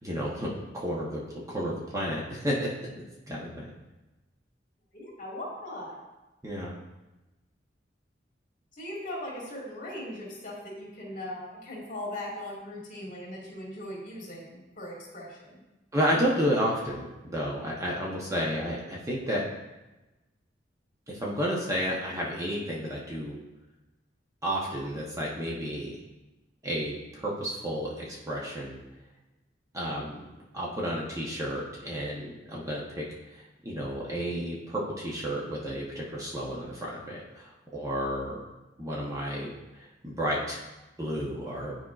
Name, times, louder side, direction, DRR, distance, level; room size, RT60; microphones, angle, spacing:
voice 1, 0.0-2.7 3.3-3.7 6.4-6.8 15.9-19.4 21.1-23.4 24.4-26.0 26.6-28.8 29.7-30.2 30.5-33.0 33.3-38.4 38.8-40.6 41.0-41.8, equal, 20° right, -4 dB, 0.9 m, -31 dB
voice 2, 4.9-6.0 8.7-15.6, left 1 dB, 50° left, -3 dB, 2.1 m, -39 dB
10.0 x 4.5 x 2.4 m, 1.1 s
head